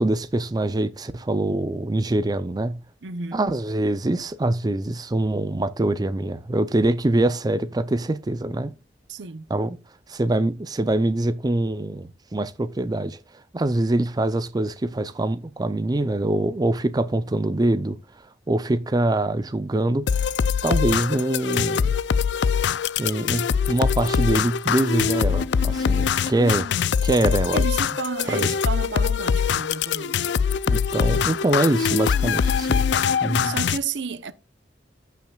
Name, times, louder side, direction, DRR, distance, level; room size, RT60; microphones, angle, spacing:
voice 1, 0.0-2.8 3.3-8.7 9.5-9.8 10.1-13.2 13.5-18.0 18.5-20.3 20.6-21.9 23.0-26.7 27.0-27.7 28.3-28.5 30.7-32.9 33.2-33.5, right 1 dB, 20° right, 0.5 m, -24 dB
voice 2, 3.0-3.5 9.1-9.5 27.5-30.3 33.1-34.3, right 5 dB, 75° right, 0.8 m, -32 dB
sound 1, 20.1-33.8, left 6 dB, 65° left, 0.4 m, -23 dB
15.0 x 5.8 x 2.3 m
head